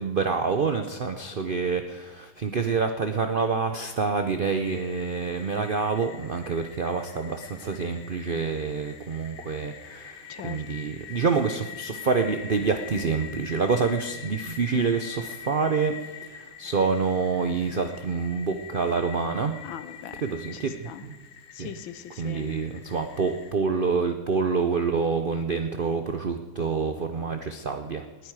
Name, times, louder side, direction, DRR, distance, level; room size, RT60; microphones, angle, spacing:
voice 1, 0.0-19.5 20.2-21.2 21.6-21.7 22.2-28.1, right 5 dB, 70° right, 7 dB, 0.5 m, -27 dB
sound 1, 4.7-23.5, left 8 dB, 70° left, 1.6 m, -44 dB
voice 2, 10.3-10.6 19.6-20.2 20.5-21.1 21.5-22.5 28.2-28.3, left 10 dB, 90° left, 12 dB, 1.6 m, -40 dB
20.0 x 9.5 x 4.8 m, 1.3 s
omnidirectional pair, 2.1 m